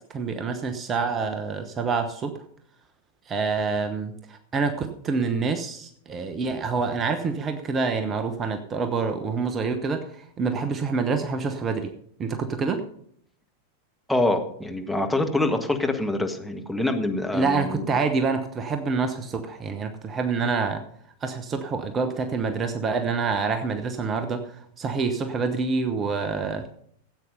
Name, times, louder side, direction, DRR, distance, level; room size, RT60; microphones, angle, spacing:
voice 1, 0.1-2.3 3.3-11.9 12.2-12.8 17.3-20.8 21.2-26.7, right 4 dB, 25° right, 7 dB, 1.1 m, -27 dB
voice 2, 14.1-17.9, left 2 dB, ahead, 3 dB, 1.5 m, -25 dB
15.0 x 8.5 x 5.4 m, 0.65 s
figure-of-eight pair, 90°, 0 cm